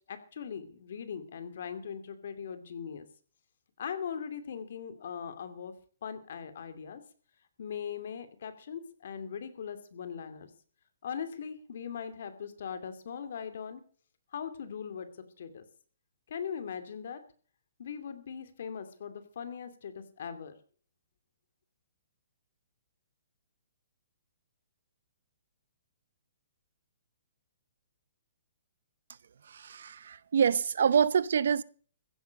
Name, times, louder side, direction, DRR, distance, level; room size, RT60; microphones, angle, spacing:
voice 1, 0.1-3.1 3.8-5.7 6.0-7.0 7.6-10.5 11.0-13.8 14.3-15.1 15.4-15.6 16.3-17.2 17.8-20.5, left 7 dB, 65° left, 2.7 m, -40 dB
voice 2, 29.5-31.6, right 7 dB, 70° right, 0.8 m, -26 dB
15.5 x 10.0 x 6.5 m
hypercardioid pair, 155°, 0 cm